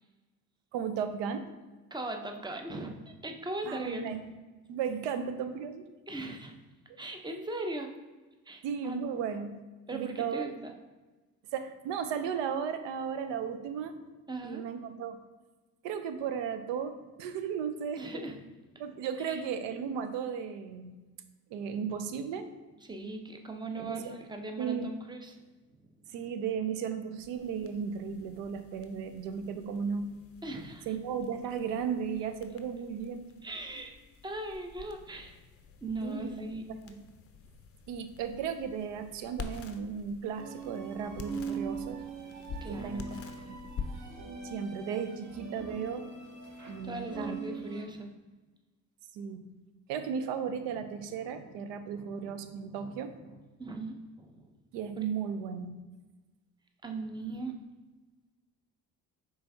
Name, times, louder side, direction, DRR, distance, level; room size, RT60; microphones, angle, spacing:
voice 1, 0.7-1.5 3.7-4.3 4.7-5.8 8.6-9.5 9.9-10.4 11.5-13.9 14.4-15.2 15.8-18.0 18.8-20.9 21.5-22.5 23.8-24.1 24.6-24.9 26.1-30.1 30.9-33.3 36.0-36.3 36.8-37.0 37.9-42.0 42.7-43.2 43.5-43.6 44.4-46.0 46.7-47.4 49.1-49.4 49.9-53.1 54.7-55.7, right 7 dB, 70° right, 9 dB, 0.6 m, -35 dB
voice 2, 1.9-4.1 6.1-6.5 7.0-7.9 8.5-9.0 9.9-10.7 14.3-14.6 18.0-18.4 19.2-19.4 22.9-25.4 30.4-30.9 33.4-33.9 34.2-35.4 35.8-36.7 42.6-43.0 46.7-48.1 50.8-50.9 51.2-51.5 51.9-52.9 53.6-54.5 56.8-57.6, right 2 dB, 10° right, 4 dB, 0.6 m, -39 dB
sound 1, 27.2-46.8, left 5 dB, 30° left, 0.5 m, -48 dB
sound 2, 40.4-47.8, right 4 dB, 40° right, 1.0 m, -41 dB
5.3 x 3.3 x 2.7 m, 1.2 s
hypercardioid pair, 55°, 45 cm